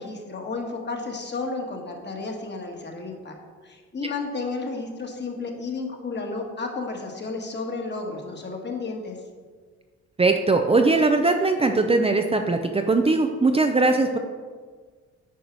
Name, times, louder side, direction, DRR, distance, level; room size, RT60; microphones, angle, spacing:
voice 1, 0.0-3.4 3.6-9.2, left 3 dB, 35° left, 1 dB, 1.8 m, -32 dB
voice 2, 10.2-14.2, right 3 dB, 20° right, 4 dB, 0.6 m, -20 dB
9.3 x 4.8 x 6.1 m, 1.5 s
cardioid pair, 90°, 30 cm